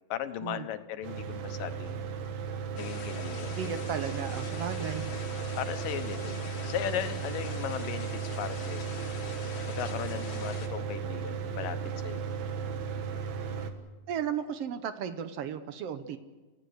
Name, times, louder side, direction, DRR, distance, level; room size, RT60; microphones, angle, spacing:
voice 1, 0.1-2.0 2.8-3.7 5.6-8.1 8.4-8.9 9.7-11.8 12.0-12.2, left 10 dB, 70° left, 9 dB, 2.6 m, -37 dB
Mechanical fan, 1.0-13.7, right 6 dB, 60° right, 2.5 m, -35 dB
sound 1, 2.8-10.7, left 5 dB, 55° left, 3.4 m, -44 dB
voice 2, 3.5-5.1 14.1-16.2, right 8 dB, 85° right, 9 dB, 1.3 m, -35 dB
30.0 x 15.5 x 7.9 m, 1.2 s
omnidirectional pair, 4.2 m